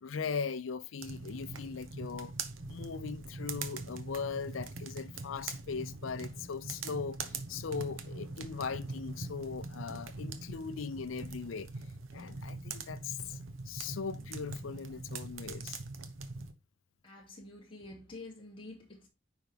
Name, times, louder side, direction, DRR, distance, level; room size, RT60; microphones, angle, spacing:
voice 1, 0.0-2.3 2.7-11.7 12.1-13.4 13.7-15.8, left 5 dB, 75° left, 0.5 m, -39 dB
sound 1, 1.0-16.5, right 3 dB, 75° right, 1.0 m, -42 dB
voice 2, 17.0-19.1, left 2 dB, 25° left, 2.6 m, -48 dB
9.5 x 4.7 x 3.4 m
head